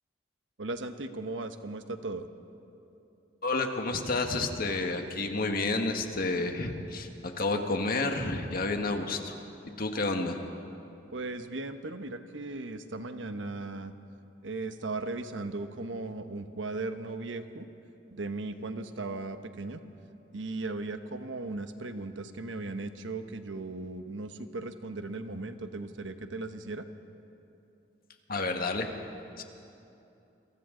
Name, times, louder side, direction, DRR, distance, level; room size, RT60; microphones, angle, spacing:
voice 1, 0.6-2.3 11.1-13.9 14.4-17.6 18.1-19.8 20.3-26.9, right 2 dB, 85° right, 8 dB, 1.1 m, -37 dB
voice 2, 3.4-9.4 9.8-10.4 28.3-28.9 29.4-29.5, left 3 dB, 50° left, 4 dB, 1.6 m, -30 dB
29.5 x 23.0 x 3.9 m, 2.8 s
head